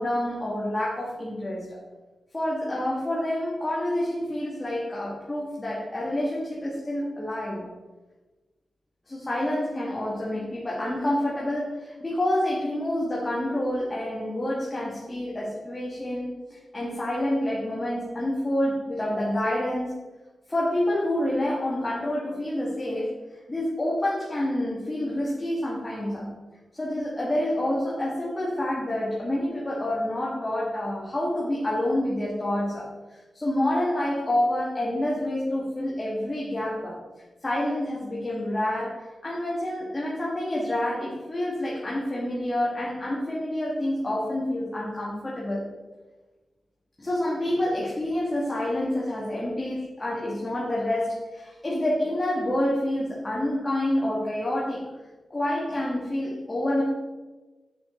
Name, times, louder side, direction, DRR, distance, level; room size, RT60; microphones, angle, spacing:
voice 1, 0.0-1.8 2.3-7.7 9.1-20.0 20.5-23.2 23.5-26.4 26.7-37.0 37.4-45.7 47.0-54.9 55.3-56.8, left 1 dB, 30° left, -5 dB, 1.7 m, -28 dB
6.2 x 5.9 x 3.7 m, 1.2 s
cardioid pair, 50°, 0 cm